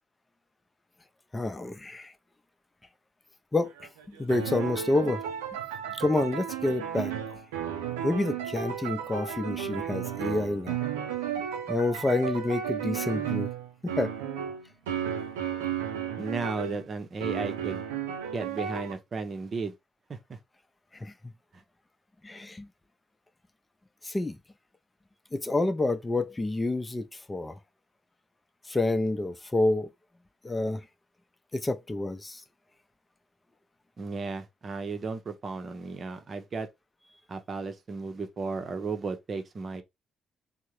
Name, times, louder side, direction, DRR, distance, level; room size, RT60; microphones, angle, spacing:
voice 1, 1.3-2.1 3.5-3.7 4.1-5.2 5.9-7.1 8.0-10.8 11.7-13.5 13.8-14.1 21.0-21.1 22.2-22.7 24.0-24.4 25.3-27.6 28.7-29.9 30.4-30.8 31.5-32.4, left 2 dB, 25° left, 0.6 m, -28 dB
sound 1, 3.6-16.8 17.2-18.9, right 9 dB, 85° right, 0.5 m, -33 dB
voice 2, 16.2-17.8 18.3-19.7 20.1-20.4 21.5-21.6 34.0-36.7 37.3-39.8, right 4 dB, 45° right, 0.7 m, -34 dB
3.5 x 2.1 x 3.0 m
hypercardioid pair, 45°, 0 cm